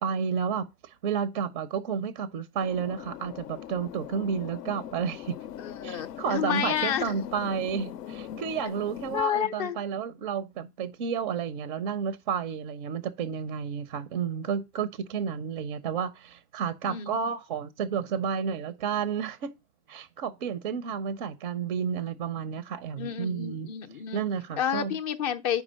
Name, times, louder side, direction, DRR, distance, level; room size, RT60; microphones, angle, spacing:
voice 1, 0.0-5.3 5.8-19.5 19.9-23.7 24.1-25.0, right 7 dB, 35° right, 0.4 m, -31 dB
sound 1, 2.6-9.2, left 10 dB, 80° left, 0.6 m, -41 dB
voice 2, 5.6-7.1 9.1-9.8 16.8-17.2 23.0-24.2 24.6-25.6, left 9 dB, 25° left, 0.4 m, -30 dB
4.8 x 4.5 x 5.1 m
hypercardioid pair, 120°, 48 cm